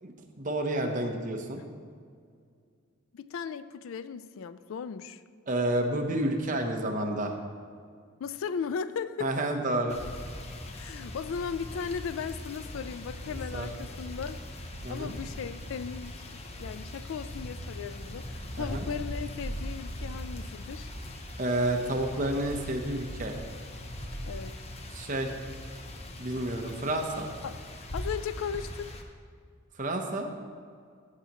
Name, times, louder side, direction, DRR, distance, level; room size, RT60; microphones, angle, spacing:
voice 1, 0.0-1.6 5.5-7.4 9.2-10.0 13.3-13.7 14.8-15.1 18.6-18.9 21.4-23.4 24.9-25.3 26.2-27.3 29.8-30.3, right 1 dB, 40° right, 4 dB, 0.8 m, -30 dB
voice 2, 3.1-5.2 8.2-9.3 10.7-14.4 14.9-16.2 16.6-20.9 24.2-24.5 27.4-27.5 27.9-28.9, left 6 dB, 70° left, 14 dB, 0.3 m, -36 dB
sound 1, 9.9-29.0, left 1 dB, 30° left, 0.7 m, -40 dB
14.5 x 7.3 x 3.0 m, 2.2 s
head